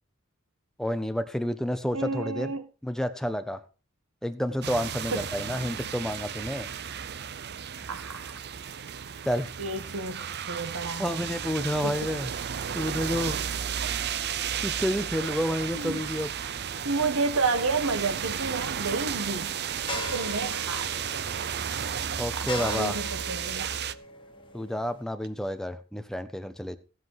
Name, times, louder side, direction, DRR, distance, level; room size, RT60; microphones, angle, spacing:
voice 1, 0.8-2.5 2.8-3.6 4.2-6.7 9.3-9.5 11.0-12.3 12.7-13.4 14.6-16.3 22.2-23.0 24.5-26.8, equal, ahead, 1.1 m, -30 dB
voice 2, 1.9-2.6 5.1-5.2 7.9-8.3 9.6-11.2 11.8-12.0 15.7-16.0 16.8-19.5 19.9-20.9 22.4-23.7, right 3 dB, 85° right, 1.7 m, -31 dB
sound 1, 4.6-23.9, right 8 dB, 55° right, 0.7 m, -33 dB
sound 2, 15.7-25.0, left 1 dB, 25° left, 1.8 m, -42 dB
16.0 x 7.7 x 4.8 m
head